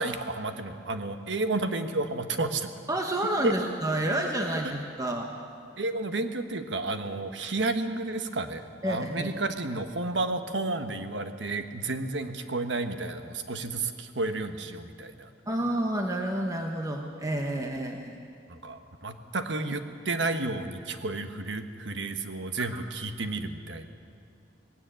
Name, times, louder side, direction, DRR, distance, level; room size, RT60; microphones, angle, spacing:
voice 1, 0.0-2.7 3.4-3.5 4.1-4.5 5.8-15.3 18.5-23.9, right 2 dB, 75° right, 8 dB, 1.3 m, -31 dB
voice 2, 2.9-5.3 8.8-9.4 15.5-18.2 22.7-22.8, right 1 dB, 20° right, 2 dB, 1.2 m, -29 dB
19.0 x 17.0 x 9.0 m, 2.4 s
head